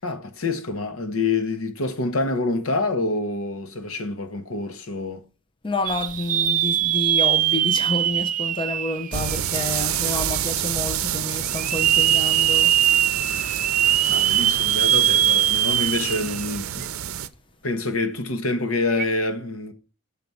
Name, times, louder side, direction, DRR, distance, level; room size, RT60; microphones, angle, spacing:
voice 1, 0.0-5.2 14.1-16.9 17.6-19.7, left 3 dB, 75° left, 1.0 m, -26 dB
voice 2, 5.6-13.1, left 2 dB, 25° left, 0.6 m, -29 dB
sound 1, 5.9-9.8 10.3-10.4 11.5-16.5 16.8-16.9 18.9-19.1, right 11 dB, 40° right, 0.3 m, -21 dB
sound 2, 9.1-17.3, right 10 dB, 85° right, 0.6 m, -28 dB
6.9 x 4.6 x 5.3 m
head